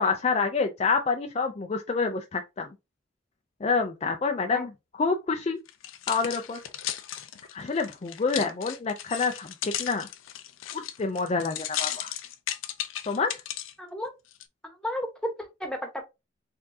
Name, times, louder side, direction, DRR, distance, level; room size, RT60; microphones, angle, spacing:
voice 1, 0.0-2.7 3.6-4.7 5.0-5.6 6.1-6.6 7.5-10.1 10.7-12.1 13.1-13.4, left 4 dB, 35° left, 0.4 m, -27 dB
sound 1, 5.7-13.7 14.3-14.4, left 11 dB, 90° left, 0.5 m, -35 dB
voice 2, 13.8-14.1 14.8-16.0, left 1 dB, 5° left, 1.1 m, -33 dB
4.5 x 3.6 x 2.7 m
head